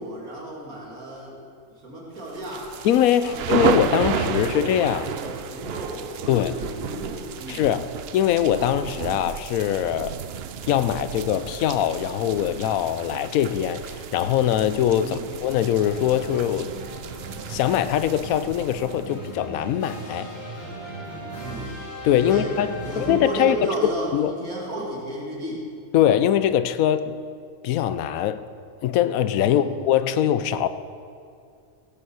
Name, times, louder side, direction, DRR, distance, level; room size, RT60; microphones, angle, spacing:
voice 1, 0.0-1.4 1.7-2.7 3.2-7.7 15.0-15.3 21.4-21.8 22.2-22.5 22.8-25.7 29.4-29.7, right 1 dB, 90° right, 3.1 m, -33 dB
sound 1, 2.3-19.3, right 8 dB, 65° right, 0.6 m, -32 dB
voice 2, 2.8-5.1 6.3-6.5 7.5-10.2 10.7-16.7 17.5-20.3 22.0-23.6 23.8-24.3 25.9-27.2 27.6-28.5 28.8-30.7, left 10 dB, 85° left, 1.0 m, -22 dB
sound 2, 15.8-23.7, right 1 dB, 10° left, 3.5 m, -37 dB
16.0 x 6.9 x 6.3 m
omnidirectional pair, 1.5 m